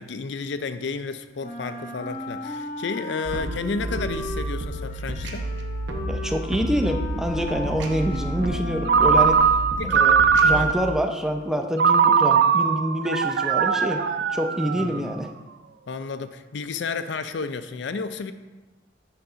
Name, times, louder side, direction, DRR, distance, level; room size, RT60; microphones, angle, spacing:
voice 1, 0.0-5.5 9.8-10.1 10.5-10.7 14.8-15.1 15.9-18.3, left 4 dB, 70° left, 11 dB, 0.4 m, -32 dB
Wind instrument woodwind instrument, 1.4-9.6, left 1 dB, 50° left, 0.8 m, -36 dB
sound 1, 3.3-10.7, right 1 dB, 75° right, 0.8 m, -31 dB
voice 2, 6.1-9.4 9.8-10.2 10.4-14.0 14.3-15.3, equal, 5° right, 4 dB, 0.5 m, -26 dB
Ringtone, 8.9-10.9 11.8-15.1, right 6 dB, 60° right, 0.3 m, -20 dB
7.9 x 4.0 x 5.6 m, 1.2 s
head